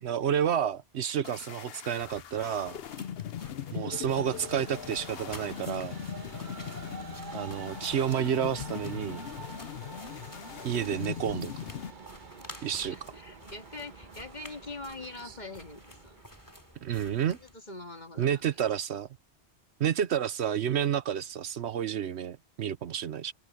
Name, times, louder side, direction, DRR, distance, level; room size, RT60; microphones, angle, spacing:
voice 1, 0.0-2.8 3.7-6.0 7.3-9.3 10.6-11.5 12.6-13.0 16.8-17.4 18.2-19.1 19.8-23.3, right 9 dB, 75° right, 1.1 m, -30 dB
sound 1, 1.2-11.9, left 9 dB, 65° left, 0.9 m, -40 dB
sound 2, 2.0-17.5, left 1 dB, 15° left, 2.6 m, -52 dB
voice 2, 3.4-3.9 12.5-16.2 17.4-18.6, left 2 dB, 40° left, 2.7 m, -45 dB
Train, 3.7-17.2, right 5 dB, 45° right, 1.3 m, -48 dB
omnidirectional pair, 1.1 m